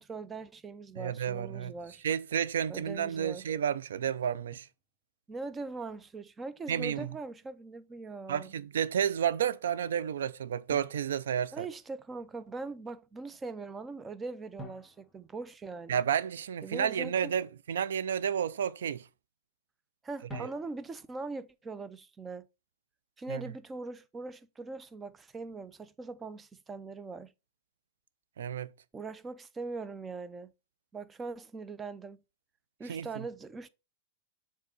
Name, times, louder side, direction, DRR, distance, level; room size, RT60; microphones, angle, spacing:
voice 1, 0.0-2.0 2.7-3.4 5.3-8.5 11.5-16.0 16.6-17.3 20.0-22.5 23.2-27.3 28.9-30.5 30.9-32.2 32.8-33.7, right 3 dB, 15° right, 0.5 m, -41 dB
voice 2, 1.0-1.7 2.0-4.7 6.7-7.1 8.3-11.7 15.9-19.0 20.3-20.5 23.3-23.4 28.4-28.7 32.9-33.2, right 8 dB, 75° right, 0.5 m, -31 dB
Drum, 4.5-4.8 7.0-8.1 10.7-12.1 14.6-16.3 20.3-21.2, equal, ahead, 1.3 m, -50 dB
6.6 x 3.6 x 4.2 m
hypercardioid pair, 115°, 0 cm